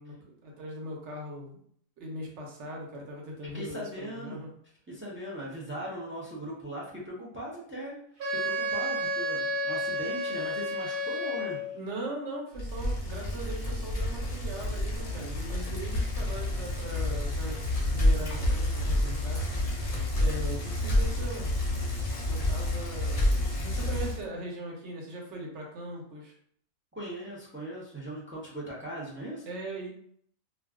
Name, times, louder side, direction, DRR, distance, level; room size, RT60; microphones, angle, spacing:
voice 1, 0.0-1.6 2.0-4.5 11.7-17.6 17.9-19.5 20.2-21.5 22.3-26.3 29.4-29.9, right 1 dB, 60° right, -1 dB, 1.0 m, -40 dB
voice 2, 3.5-4.4 4.9-8.0 8.3-11.6 26.9-29.5, right 1 dB, 15° right, -5 dB, 0.4 m, -39 dB
Wind instrument woodwind instrument, 8.2-11.8, equal, 90° right, 1.2 m, -31 dB
Bicycle, 12.5-24.2, left 1 dB, 40° left, 0.5 m, -29 dB
2.4 x 2.3 x 3.5 m, 0.64 s
omnidirectional pair, 1.4 m